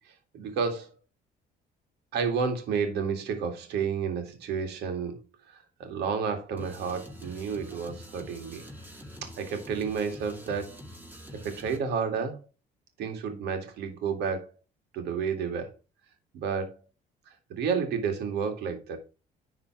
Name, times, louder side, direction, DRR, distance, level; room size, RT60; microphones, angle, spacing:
voice 1, 0.3-0.9 2.1-5.2 5.8-8.6 9.2-10.8 11.3-12.4 13.0-14.5 14.9-15.7 16.3-16.7 17.5-19.0, right 6 dB, 80° right, 2.1 m, -31 dB
sound 1, 6.6-11.8, equal, 10° right, 2.4 m, -46 dB
10.5 x 3.8 x 4.5 m
cardioid pair, 110°, 17 cm